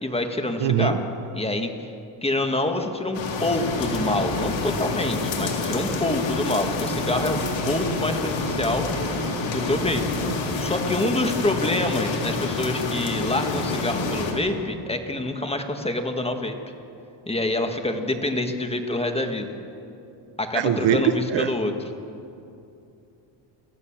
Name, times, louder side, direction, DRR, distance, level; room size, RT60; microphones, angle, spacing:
voice 1, 0.0-1.0 1.3-1.9 2.2-8.9 9.5-10.1 10.6-16.6 17.3-19.5 20.4-21.7, left 2 dB, 10° left, 5 dB, 1.8 m, -26 dB
voice 2, 0.6-1.0 20.5-21.5, right 9 dB, 65° right, 10 dB, 1.3 m, -22 dB
sound 1, 3.1-14.3, left 3 dB, 65° left, 3.8 m, -28 dB
sound 2, 3.7-10.4, right 4 dB, 25° right, 2.0 m, -39 dB
25.0 x 15.0 x 7.4 m, 2.7 s
cardioid pair, 115°, 49 cm